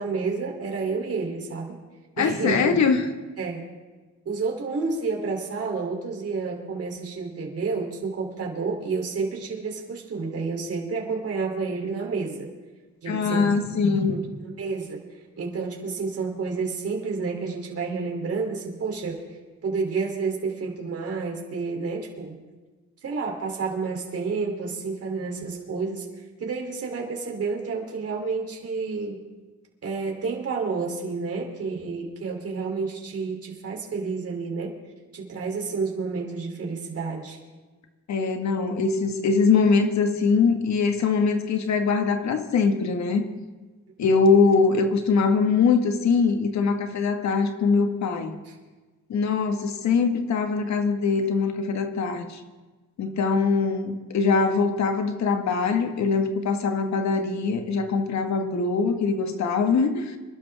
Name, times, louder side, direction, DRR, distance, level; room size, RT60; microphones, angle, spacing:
voice 1, 0.0-1.8 2.2-2.7 3.4-3.7 4.3-12.5 13.0-13.5 14.1-15.0 15.4-19.2 19.6-22.4 23.0-29.2 29.8-34.7 35.1-37.4 48.5-48.6, right 4 dB, 50° right, 0 dB, 3.5 m, -30 dB
voice 2, 2.2-3.1 13.1-14.2 38.1-43.3 44.0-48.4 49.1-52.4 53.0-60.2, left 4 dB, 65° left, 6 dB, 1.9 m, -22 dB
25.5 x 12.0 x 3.7 m, 1.3 s
cardioid pair, 90°, 30 cm